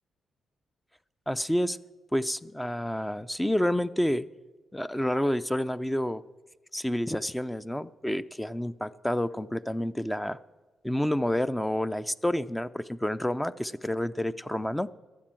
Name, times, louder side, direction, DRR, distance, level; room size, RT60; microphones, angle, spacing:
voice 1, 1.3-1.8 2.1-4.3 4.7-6.2 6.7-10.4 10.8-14.9, left 1 dB, 5° left, 14 dB, 0.4 m, -29 dB
13.0 x 8.1 x 7.6 m, 1.3 s
cardioid pair, 85°, 0 cm